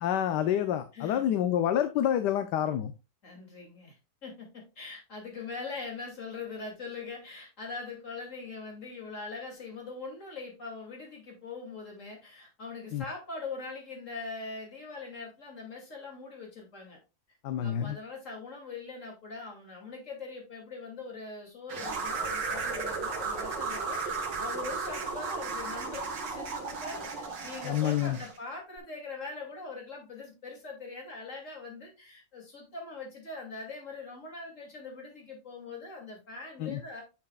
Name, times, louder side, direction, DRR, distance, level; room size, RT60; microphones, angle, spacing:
voice 1, 0.0-2.9 12.9-13.0 17.4-18.0 27.6-28.2 36.6-36.8, left 10 dB, 75° left, 1.3 m, -28 dB
voice 2, 0.9-1.4 3.2-3.9 4.2-17.0 17.3-37.0, left 3 dB, 45° left, 3.0 m, -42 dB
sound 1, 21.7-28.4, right 4 dB, 80° right, 2.2 m, -35 dB
10.0 x 6.1 x 2.4 m
omnidirectional pair, 1.9 m